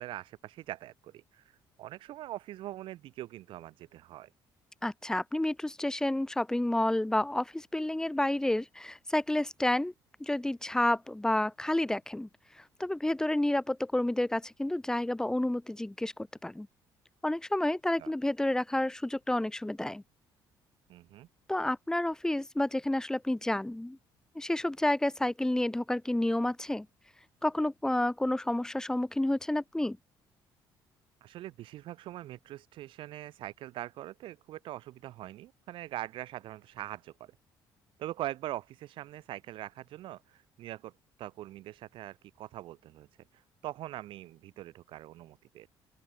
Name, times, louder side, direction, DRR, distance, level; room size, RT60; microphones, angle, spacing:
voice 1, 0.0-1.4 1.8-4.3 18.0-18.1 20.9-21.3 31.2-37.3 38.0-40.9 41.2-43.1 43.6-45.7, right 14 dB, 75° right, 2.9 m, -42 dB
voice 2, 4.8-9.9 10.2-12.3 12.6-16.7 17.2-20.0 21.5-24.0 24.4-26.9 27.4-30.0, left 1 dB, 5° left, 4.0 m, -30 dB
open air
cardioid pair, 110°, 9 cm